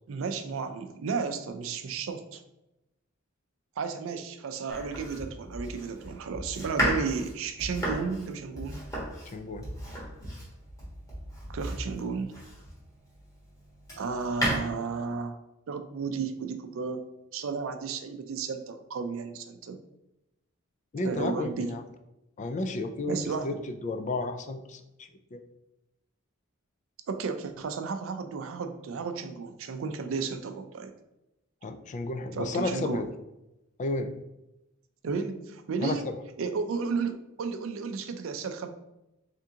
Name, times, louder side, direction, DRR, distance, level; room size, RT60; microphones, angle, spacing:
voice 1, 0.1-2.4 3.8-8.8 11.5-12.3 14.0-15.4 15.7-17.0 17.3-19.8 21.0-21.7 23.1-23.6 27.1-30.9 32.4-33.0 35.0-36.1 36.4-38.7, right 5 dB, 70° right, 7 dB, 0.4 m, -33 dB
Domestic sounds home sounds, 4.7-12.9 13.4-14.6, equal, 15° left, 1.2 m, -34 dB
voice 2, 9.3-9.6 20.9-21.8 22.4-25.4 31.6-33.1 33.8-34.1 35.8-36.0, left 2 dB, 35° left, 6 dB, 0.3 m, -32 dB
3.6 x 3.5 x 2.8 m, 0.93 s
head